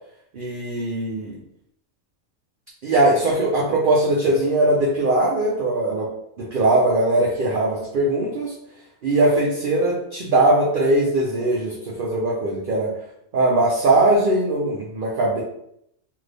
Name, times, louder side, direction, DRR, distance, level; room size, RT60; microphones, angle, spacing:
voice 1, 0.3-1.4 2.8-6.1 6.4-8.5 9.0-12.9 13.3-15.4, right 2 dB, 60° right, -3 dB, 0.5 m, -20 dB
2.6 x 2.6 x 3.2 m, 0.76 s
omnidirectional pair, 1.4 m